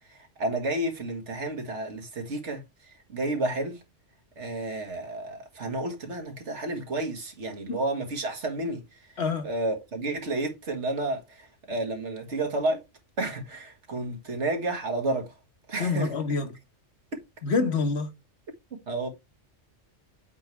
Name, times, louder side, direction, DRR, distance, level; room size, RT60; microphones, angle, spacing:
voice 1, 0.1-3.8 4.4-8.8 9.4-12.8 13.2-15.3 15.7-16.1 17.1-17.2 18.9-19.1, right 2 dB, 75° right, 1.9 m, -31 dB
voice 2, 9.2-9.5 15.8-16.5 17.4-18.1, left 4 dB, 65° left, 1.4 m, -26 dB
8.1 x 3.2 x 4.6 m
omnidirectional pair, 1.2 m